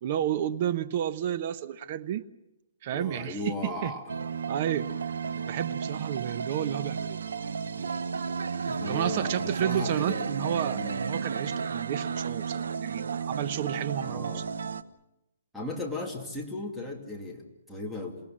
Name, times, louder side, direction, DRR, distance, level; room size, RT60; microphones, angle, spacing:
voice 1, 0.0-2.2 2.8-3.9 4.5-4.9 5.5-7.2 8.9-14.4, right 10 dB, 35° right, 15 dB, 1.0 m, -31 dB
voice 2, 2.9-4.0 5.7-5.8 8.7-10.2 10.7-11.0 14.0-14.5 15.5-18.2, left 2 dB, ahead, -1 dB, 2.7 m, -36 dB
sound 1, 4.1-14.8, right 6 dB, 85° right, 1.1 m, -33 dB
28.0 x 18.0 x 7.5 m, 0.92 s
hypercardioid pair, 165°, 0 cm